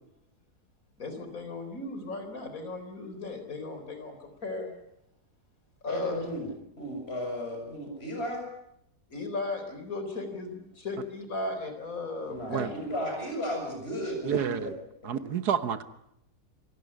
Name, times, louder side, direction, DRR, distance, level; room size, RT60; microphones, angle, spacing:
voice 1, 1.0-4.7 5.8-6.2 9.1-12.7, left 3 dB, 60° left, 7 dB, 4.5 m, -36 dB
voice 2, 5.9-6.5 6.8-8.4 12.3-14.7 15.0-15.2, equal, 40° left, 2 dB, 7.2 m, -34 dB
voice 3, 14.2-14.7 15.0-15.8, right 8 dB, 80° right, 12 dB, 1.8 m, -29 dB
27.5 x 17.0 x 9.7 m, 0.78 s
omnidirectional pair, 1.7 m